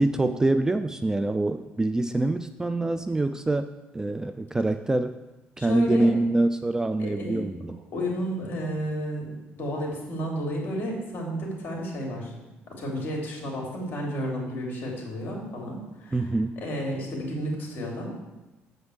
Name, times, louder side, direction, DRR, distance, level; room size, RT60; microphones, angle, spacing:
voice 1, 0.0-5.2 5.6-7.8 16.1-16.5, right 2 dB, 10° right, 10 dB, 0.3 m, -25 dB
voice 2, 5.6-6.1 7.0-7.5 7.9-12.3 12.8-16.2 16.6-18.1, equal, 45° left, -1 dB, 3.2 m, -32 dB
8.0 x 5.2 x 6.5 m, 1.0 s
cardioid pair, 110°, 5 cm